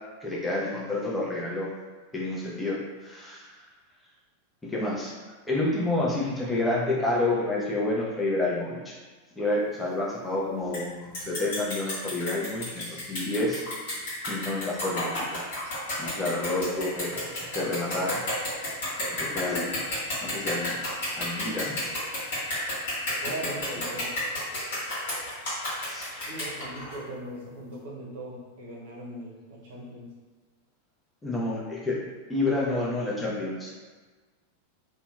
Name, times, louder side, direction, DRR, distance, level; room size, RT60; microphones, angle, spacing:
voice 1, 0.2-1.7 2.1-3.5 4.7-5.1 5.5-9.0 9.4-13.6 14.3-15.4 16.0-18.2 19.3-19.8 20.2-20.8 21.2-21.8 23.4-23.5 25.9-26.5 31.2-32.0 32.3-33.7, left 2 dB, 10° left, -5 dB, 0.6 m, -29 dB
sound 1, 10.7-10.8 11.1-27.0, left 1 dB, 55° left, 1.3 m, -32 dB
voice 2, 23.2-24.2 26.3-30.1 32.7-32.9, right 1 dB, 55° right, -5 dB, 0.7 m, -39 dB
2.8 x 2.2 x 2.2 m, 1.3 s
figure-of-eight pair, 90°, 0 cm